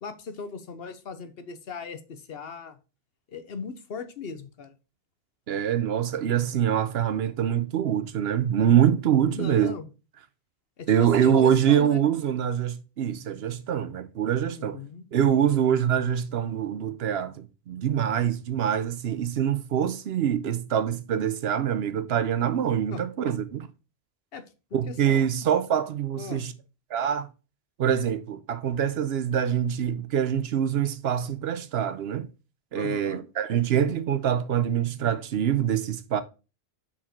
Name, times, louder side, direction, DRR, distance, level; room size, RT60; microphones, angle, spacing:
voice 1, 0.0-2.8 3.3-4.8 9.3-9.9 10.8-12.0 14.6-15.0 22.9-23.3 24.3-24.4 24.7-25.2 26.2-26.4 32.7-33.2, left 5 dB, 70° left, 1.1 m, -38 dB
voice 2, 5.5-9.7 10.9-14.8 15.1-23.6 24.7-26.5 26.9-27.3 27.8-32.3 32.7-36.2, right 9 dB, 75° right, 0.9 m, -25 dB
5.7 x 5.0 x 4.3 m
omnidirectional pair, 1.1 m